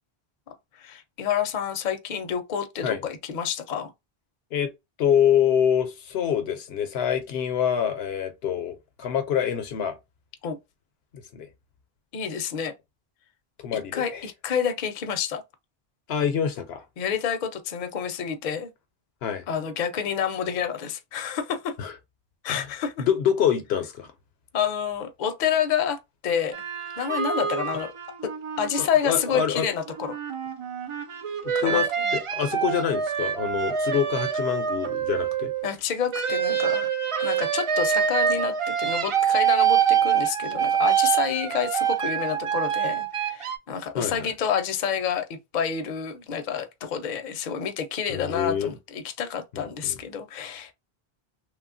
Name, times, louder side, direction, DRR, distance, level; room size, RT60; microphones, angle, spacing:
voice 1, 0.8-3.9 10.4-10.6 12.1-12.7 13.9-15.4 17.0-18.7 19.5-21.7 22.4-23.0 24.5-26.6 27.0-27.9 28.2-30.2 31.5-31.8 35.6-36.9 37.2-50.7, left 8 dB, 55° left, 0.6 m, -28 dB
voice 2, 5.0-10.0 11.1-11.5 13.6-14.2 16.1-16.8 19.2-19.4 21.8-21.9 22.5-22.7 23.0-24.1 28.8-29.7 31.4-35.5 43.9-44.3 48.1-48.7 49.5-50.0, left 8 dB, 80° left, 0.8 m, -26 dB
sound 1, 26.5-29.5 29.9-35.7 36.1-43.6, right 8 dB, 55° right, 0.3 m, -26 dB
3.1 x 2.3 x 2.4 m
omnidirectional pair, 1.0 m